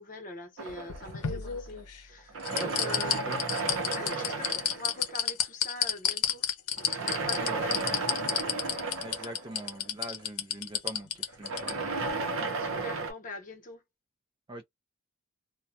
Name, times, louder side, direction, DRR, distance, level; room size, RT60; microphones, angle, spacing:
voice 1, 0.0-3.3 3.8-6.5 6.9-8.5 12.6-13.8, left 3 dB, 35° left, 0.8 m, -43 dB
sound 1, 0.6-1.8 2.3-5.4 6.8-10.2 11.3-13.1, right 3 dB, 55° right, 0.6 m, -34 dB
sound 2, 0.7-2.0 2.4-11.7 12.1-12.2, left 8 dB, 90° left, 0.7 m, -30 dB
voice 2, 2.5-3.4 7.4-7.6 9.0-11.9 14.5-14.7, right 1 dB, 20° right, 0.3 m, -43 dB
2.2 x 2.1 x 2.7 m
head